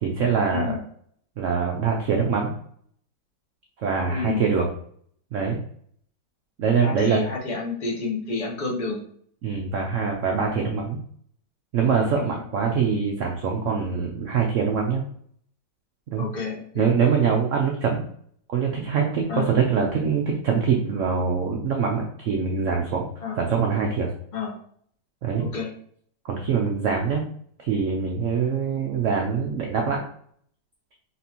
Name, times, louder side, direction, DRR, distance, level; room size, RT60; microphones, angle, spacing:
voice 1, 0.0-0.8 1.4-2.5 3.8-4.7 5.3-5.6 6.6-7.2 9.4-11.0 11.7-15.0 16.1-16.3 16.7-18.0 18.5-23.1 23.4-24.1 25.2-25.5 26.2-27.3 27.6-30.0, right 6 dB, 70° right, 1 dB, 0.7 m, -24 dB
voice 2, 4.1-4.5 6.8-9.0 12.1-12.3 16.2-16.9 19.3-19.5 23.2-23.4 24.3-24.6 25.4-25.7, left 4 dB, 45° left, -1 dB, 0.5 m, -30 dB
4.3 x 3.4 x 2.8 m, 0.62 s
omnidirectional pair, 2.0 m